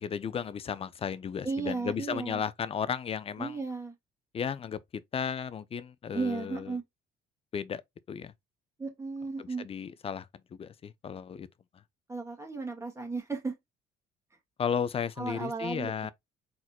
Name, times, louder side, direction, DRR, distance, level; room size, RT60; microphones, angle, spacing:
voice 1, 0.0-3.5 4.3-6.8 7.5-7.8 8.1-8.3 9.4-11.5 14.6-16.1, left 7 dB, 35° left, 0.6 m, -34 dB
voice 2, 1.4-2.4 3.4-3.9 6.1-6.8 8.8-9.7 12.1-13.6 15.2-15.9, right 3 dB, 15° right, 1.8 m, -34 dB
4.5 x 4.2 x 2.3 m
cardioid pair, 110°, 17 cm